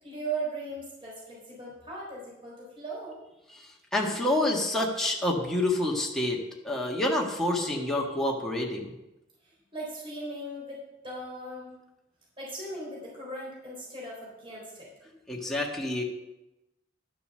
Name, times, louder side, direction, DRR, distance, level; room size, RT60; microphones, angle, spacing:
voice 1, 0.0-3.2 9.4-11.7 12.4-14.9, right 2 dB, 25° right, -5 dB, 3.9 m, -38 dB
voice 2, 3.5-6.4 6.6-8.9 15.3-16.0, left 1 dB, ahead, -2 dB, 1.6 m, -28 dB
12.0 x 6.9 x 6.7 m, 0.96 s
head